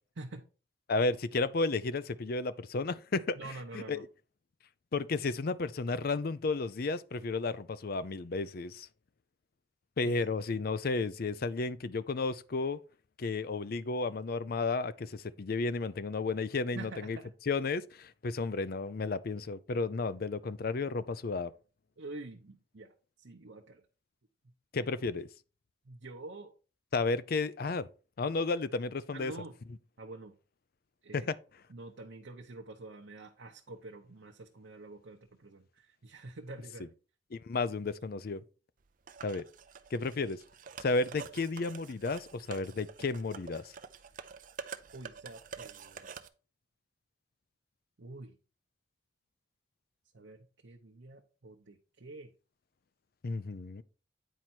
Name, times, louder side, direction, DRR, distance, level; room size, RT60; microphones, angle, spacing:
voice 1, 0.9-3.4 3.7-4.1 4.9-8.9 10.0-12.8 13.2-17.2 17.5-21.5 24.7-25.3 26.9-27.9 28.2-29.3 31.1-31.4 37.3-38.4 39.2-39.4 39.9-40.4 40.8-43.7 53.2-53.8, left 3 dB, 55° left, 0.5 m, -32 dB
voice 2, 3.4-4.0 10.0-10.1 16.7-17.3 22.0-23.8 25.8-26.5 29.1-29.5 30.0-30.3 31.0-31.3 31.7-36.9 44.9-46.1 48.0-48.4 50.1-52.3, right 2 dB, 85° right, 0.9 m, -47 dB
sound 1, 39.1-46.3, right 6 dB, 45° right, 0.6 m, -47 dB
9.1 x 4.6 x 4.3 m
head